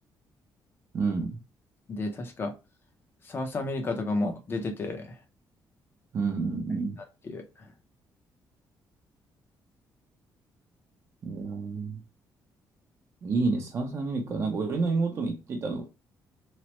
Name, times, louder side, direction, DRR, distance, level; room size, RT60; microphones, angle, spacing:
voice 1, 0.9-1.4 6.1-7.0 11.2-12.0 13.2-15.9, right 4 dB, 40° right, 0.6 m, -29 dB
voice 2, 1.9-2.5 3.2-5.2 7.2-7.7, left 2 dB, 30° left, 0.6 m, -32 dB
3.0 x 2.0 x 2.9 m
cardioid pair, 155°, 7 cm